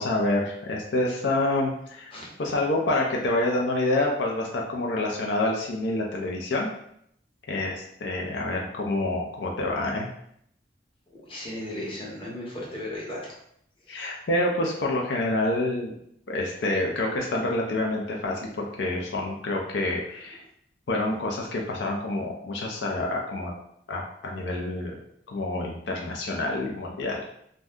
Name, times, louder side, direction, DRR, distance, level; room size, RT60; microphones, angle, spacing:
voice 1, 0.0-2.1 2.4-6.7 7.5-10.1 13.9-16.0 16.3-20.4 20.9-23.5 23.9-25.0 25.3-27.2, left 2 dB, 80° left, -1 dB, 0.5 m, -27 dB
voice 2, 11.1-13.3 13.9-14.1, left 1 dB, 30° left, -4 dB, 0.8 m, -36 dB
2.6 x 2.2 x 3.5 m, 0.71 s
head